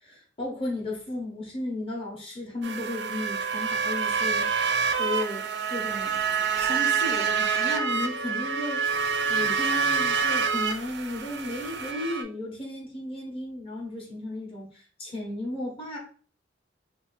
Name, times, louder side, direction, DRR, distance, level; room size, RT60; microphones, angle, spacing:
voice 1, 0.0-4.5 5.0-6.2 6.6-8.9 9.3-16.0, left 1 dB, 30° left, -1 dB, 1.0 m, -34 dB
sound 1, 2.6-12.2, right 6 dB, 65° right, 0.4 m, -27 dB
2.8 x 2.4 x 4.0 m, 0.42 s
head